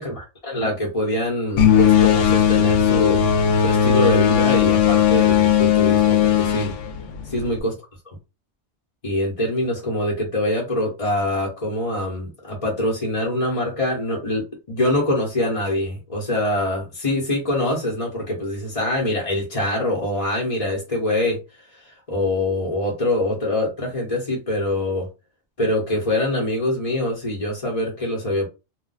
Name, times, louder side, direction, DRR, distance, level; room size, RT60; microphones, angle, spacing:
voice 1, 0.0-3.3 3.6-6.7 7.3-7.7 8.1-8.2 9.0-25.1 25.6-28.5, left 1 dB, 30° left, 0.9 m, -24 dB
sound 1, 1.6-7.6, left 8 dB, 75° left, 0.9 m, -17 dB
2.4 x 2.2 x 3.9 m
omnidirectional pair, 1.3 m